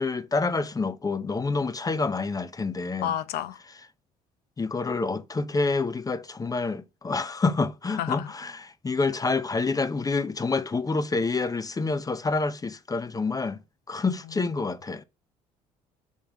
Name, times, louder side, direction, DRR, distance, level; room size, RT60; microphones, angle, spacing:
voice 1, 0.0-3.1 4.6-13.6 13.9-15.0, left 3 dB, 20° left, 0.6 m, -27 dB
voice 2, 3.0-3.6 8.0-8.3 14.2-14.3, left 11 dB, 65° left, 0.6 m, -30 dB
5.7 x 3.6 x 4.9 m
hypercardioid pair, 60°, 17 cm